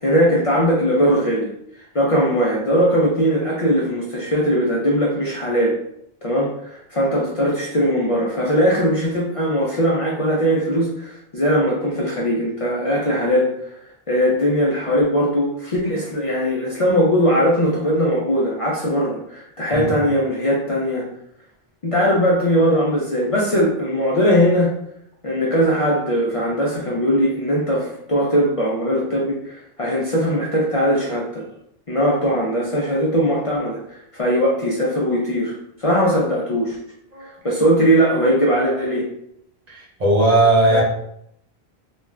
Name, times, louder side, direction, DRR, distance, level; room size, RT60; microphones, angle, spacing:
voice 1, 0.0-1.5 1.9-5.8 6.2-13.5 14.1-21.1 21.8-24.7 25.2-31.4 31.9-36.8 37.4-39.1 40.7-40.8, equal, 50° left, -5 dB, 0.4 m, -20 dB
voice 2, 39.7-40.8, right 2 dB, 45° right, -3 dB, 0.7 m, -17 dB
2.3 x 2.3 x 3.1 m, 0.74 s
omnidirectional pair, 1.1 m